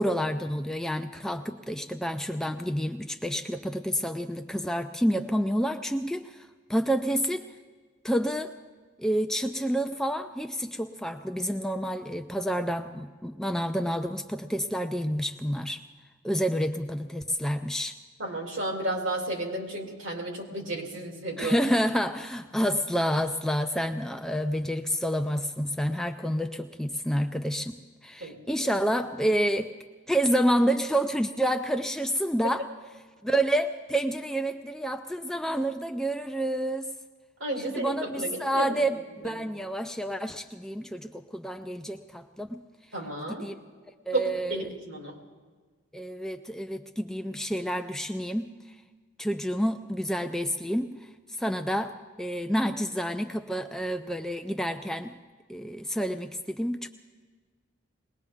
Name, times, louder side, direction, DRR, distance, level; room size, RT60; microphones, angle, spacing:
voice 1, 0.0-7.5 8.0-8.5 9.0-15.8 16.2-18.0 21.4-27.7 28.0-29.7 30.1-32.6 33.2-36.9 37.6-42.6 43.3-43.6 44.1-44.6 45.9-48.5 49.2-51.0 51.4-55.1 55.5-56.9, equal, ahead, 6 dB, 0.4 m, -29 dB
voice 2, 18.2-21.6 28.2-28.4 32.4-32.5 37.4-38.7 39.2-39.3 42.9-43.5 44.1-45.1, right 2 dB, 70° right, 0 dB, 2.8 m, -32 dB
21.5 x 19.0 x 3.6 m, 1.5 s
head